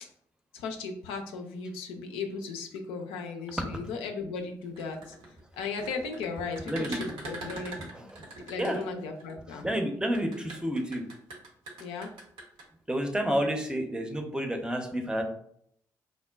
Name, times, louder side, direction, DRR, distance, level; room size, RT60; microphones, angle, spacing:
voice 1, 0.5-5.1 5.5-8.1 8.5-9.7 11.8-12.1, left 4 dB, 70° left, 4 dB, 0.4 m, -36 dB
sound 1, 4.6-9.3 10.0-12.6, right 2 dB, 65° right, 0.8 m, -42 dB
voice 2, 6.7-7.0 8.6-8.8 9.6-11.0 12.9-15.2, equal, 10° right, 3 dB, 0.6 m, -29 dB
3.7 x 2.1 x 2.3 m, 0.68 s
hypercardioid pair, 40°, 10 cm